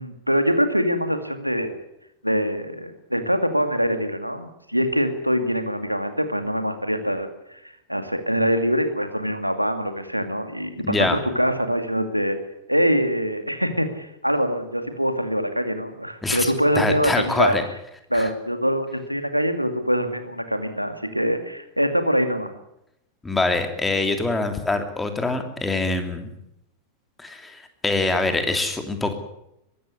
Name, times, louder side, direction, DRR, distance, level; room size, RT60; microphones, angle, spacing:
voice 1, 0.0-1.7 2.2-7.6 7.9-12.4 12.7-17.6 18.1-22.5, equal, 90° right, 7 dB, 2.2 m, -24 dB
voice 2, 10.8-11.2 16.2-17.6 18.1-18.3 23.2-26.3 27.2-29.1, left 2 dB, 10° left, 6 dB, 3.0 m, -24 dB
22.5 x 13.5 x 9.7 m, 0.84 s
figure-of-eight pair, 90°, 0 cm